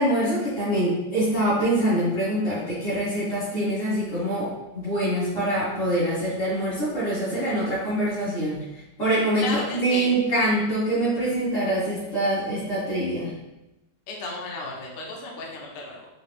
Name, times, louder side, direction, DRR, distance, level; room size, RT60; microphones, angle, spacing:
voice 1, 0.0-8.6 9.0-13.3, right 1 dB, 50° left, -14 dB, 1.9 m, -24 dB
voice 2, 9.4-10.1 14.1-16.1, left 3 dB, 65° left, -1 dB, 0.5 m, -34 dB
4.7 x 2.2 x 3.3 m, 0.97 s
omnidirectional pair, 1.8 m